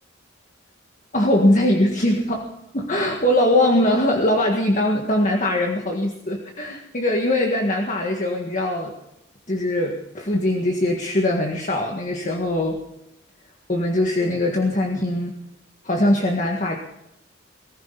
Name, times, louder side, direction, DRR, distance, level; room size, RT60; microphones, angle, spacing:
voice 1, 1.1-2.5 2.7-8.9 9.5-12.8 13.7-15.4 15.8-16.8, left 1 dB, 40° left, 1 dB, 1.8 m, -21 dB
22.5 x 15.0 x 4.1 m, 0.87 s
head